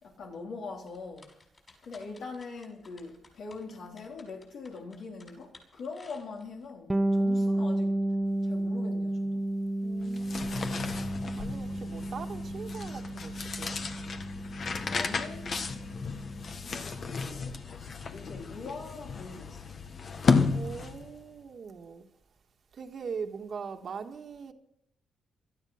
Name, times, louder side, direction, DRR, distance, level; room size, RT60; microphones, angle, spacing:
voice 1, 0.0-1.3 1.8-7.9 8.4-9.4 14.9-15.6 16.6-17.5 18.1-19.8, left 4 dB, 70° left, 3.9 m, -42 dB
sound 1, 0.9-6.7, left 3 dB, 35° left, 6.1 m, -57 dB
Bass guitar, 6.9-16.5, right 1 dB, 15° right, 1.0 m, -32 dB
voice 2, 9.8-11.0 11.4-13.8 20.5-22.0 22.7-24.5, right 6 dB, 55° right, 1.7 m, -41 dB
sound 2, 10.0-21.2, left 5 dB, 50° left, 1.6 m, -33 dB
17.5 x 13.5 x 5.8 m
cardioid pair, 85°, 0 cm